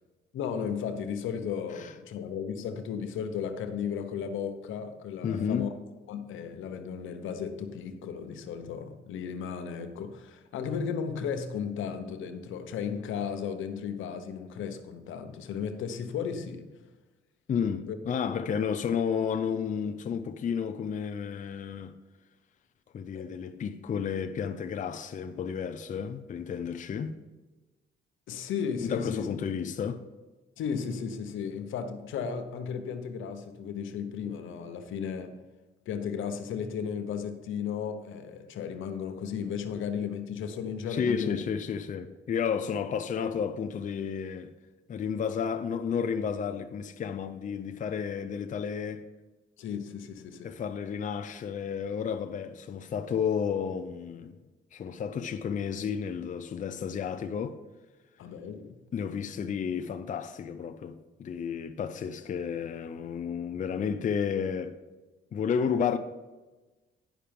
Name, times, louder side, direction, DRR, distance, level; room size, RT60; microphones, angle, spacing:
voice 1, 0.3-5.7 6.1-16.7 17.9-18.0 23.1-23.3 28.3-29.3 30.6-35.4 35.9-41.4 49.6-50.5 58.2-58.8, left 7 dB, 80° left, 0.9 m, -35 dB
voice 2, 5.2-5.7 17.5-21.9 22.9-27.1 28.8-30.0 40.9-44.5 44.9-49.1 50.4-54.4 54.7-57.6 58.9-64.8 65.3-66.0, left 7 dB, 40° left, 0.5 m, -32 dB
10.0 x 5.5 x 5.2 m
cardioid pair, 90°, 20 cm